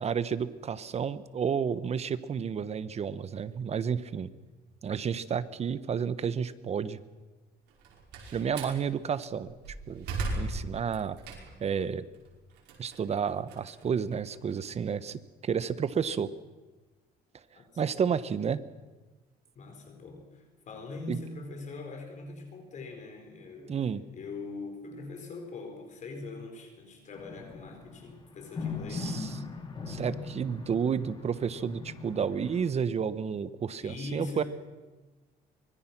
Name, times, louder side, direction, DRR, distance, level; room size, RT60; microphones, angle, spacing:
voice 1, 0.0-4.3 4.8-7.0 8.3-9.6 9.9-10.0 10.4-11.2 11.6-12.1 12.8-16.3 17.8-18.6 21.1-21.2 23.7-24.0 28.9-29.3 29.9-34.4, right 7 dB, 40° right, 15 dB, 1.1 m, -31 dB
Slam, 7.7-8.8 9.4-11.7 12.1-14.5, right 2 dB, 90° right, 5.7 m, -37 dB
voice 2, 19.5-29.3 33.8-34.4, left 3 dB, 45° left, 4 dB, 4.7 m, -42 dB
sound 1, 27.2-32.6, left 4 dB, 30° left, 3.6 m, -39 dB
24.5 x 21.5 x 6.1 m, 1.2 s
cardioid pair, 110°, 17 cm